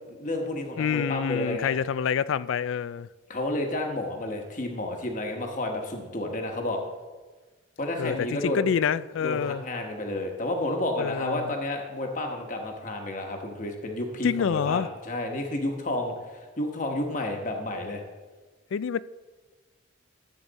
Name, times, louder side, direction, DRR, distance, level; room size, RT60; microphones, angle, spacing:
voice 1, 0.1-1.7 3.3-6.8 7.8-8.6 9.2-18.0, left 1 dB, 40° left, 1.2 m, -31 dB
voice 2, 0.8-3.1 8.0-9.6 11.0-11.5 14.2-14.9 18.7-19.0, left 7 dB, 70° left, 0.3 m, -27 dB
14.0 x 7.9 x 4.0 m
head